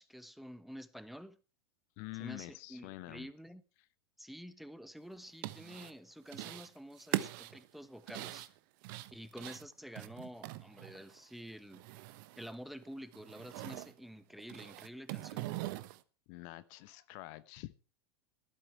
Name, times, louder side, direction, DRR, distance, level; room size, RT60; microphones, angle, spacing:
voice 1, 0.0-1.4 2.2-3.6 4.2-8.5 9.1-11.8 12.4-15.5, equal, ahead, 1.2 m, -49 dB
voice 2, 2.0-3.3 16.3-17.9, left 19 dB, 50° left, 0.9 m, -47 dB
sound 1, 5.2-5.9 6.3-6.7 7.0-11.2 11.5-12.6 12.8-13.9 14.4-16.0, right 17 dB, 50° right, 1.0 m, -42 dB
16.0 x 12.0 x 4.5 m
hypercardioid pair, 95°, 13 cm